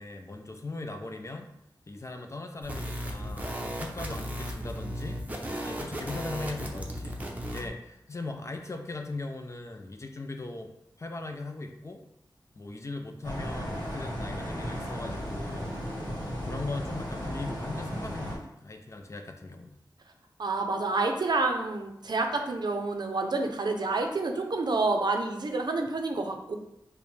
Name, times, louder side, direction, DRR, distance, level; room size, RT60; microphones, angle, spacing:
voice 1, 0.0-1.5 1.9-5.2 5.6-7.2 7.5-12.0 12.6-15.8 16.3-19.8, left 2 dB, 40° left, 5 dB, 0.4 m, -39 dB
sound 1, 2.6-7.7, equal, 20° right, 0.6 m, -35 dB
sound 2, 13.2-18.4, equal, 55° left, 1.4 m, -35 dB
voice 2, 20.4-26.6, right 3 dB, 60° right, 4 dB, 0.5 m, -28 dB
5.0 x 2.1 x 3.2 m, 0.80 s
wide cardioid pair, 95°, 8 cm